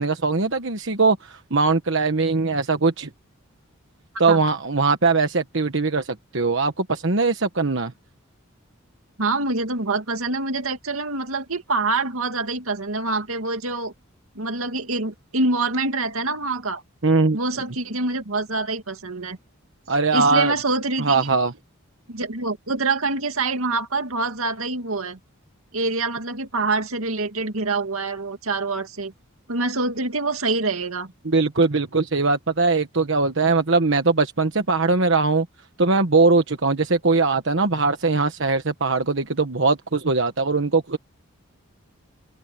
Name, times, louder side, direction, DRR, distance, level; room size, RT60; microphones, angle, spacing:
voice 1, 0.0-3.1 4.2-7.9 17.0-17.4 19.9-20.5 21.0-21.5 31.2-35.5 35.8-41.0, right 3 dB, 60° right, 1.3 m, -21 dB
voice 2, 9.2-13.9 14.4-16.8 17.3-19.4 20.1-21.4 22.1-25.2 25.7-29.1 29.5-31.1, right 3 dB, 80° right, 2.3 m, -25 dB
open air
head